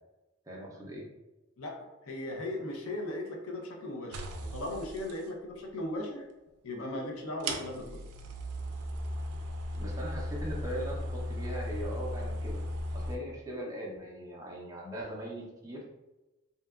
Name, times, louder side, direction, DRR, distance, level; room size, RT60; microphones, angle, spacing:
voice 1, 0.5-1.1 9.8-12.6 12.9-15.8, right 1 dB, 15° right, -3 dB, 0.4 m, -40 dB
voice 2, 1.6-4.2 4.5-6.3 6.6-8.0, left 1 dB, 75° left, 0 dB, 0.6 m, -37 dB
sound 1, 4.1-5.2 6.5-6.6 7.4-13.2, equal, 90° right, 0.4 m, -36 dB
2.7 x 2.2 x 2.3 m, 1.0 s
head